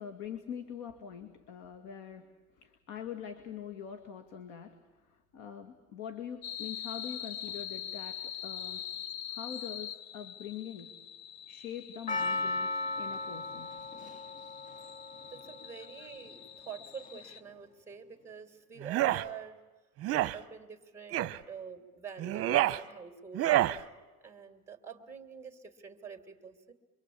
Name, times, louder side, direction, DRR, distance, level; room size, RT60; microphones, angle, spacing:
voice 1, 0.0-4.8 5.0-8.8 9.3-10.9 11.5-13.7 16.0-16.2, left 8 dB, 85° left, 8 dB, 2.4 m, -44 dB
sound 1, 6.4-17.4, left 10 dB, 60° left, 0.9 m, -44 dB
Percussion, 12.1-16.4 17.1-17.2, left 2 dB, 25° left, 0.8 m, -36 dB
voice 2, 15.3-19.6 20.1-23.6 24.2-26.7, right 7 dB, 10° right, 6 dB, 2.7 m, -47 dB
sound 2, 18.8-19.2 20.0-20.4 21.1-21.4 22.2-22.8 23.3-23.8, right 14 dB, 50° right, 1.0 m, -27 dB
28.0 x 24.0 x 8.6 m, 1.2 s
cardioid pair, 160°, 30 cm